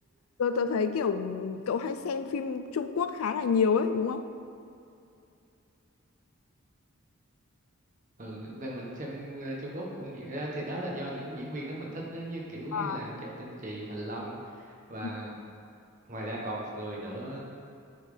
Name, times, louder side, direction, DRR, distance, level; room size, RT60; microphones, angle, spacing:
voice 1, 0.4-4.2 12.7-13.0, left 5 dB, 90° left, 10 dB, 0.4 m, -28 dB
voice 2, 8.2-15.4 16.0-17.4, right 1 dB, 40° right, -3 dB, 1.3 m, -37 dB
8.9 x 4.1 x 5.0 m, 2.5 s
head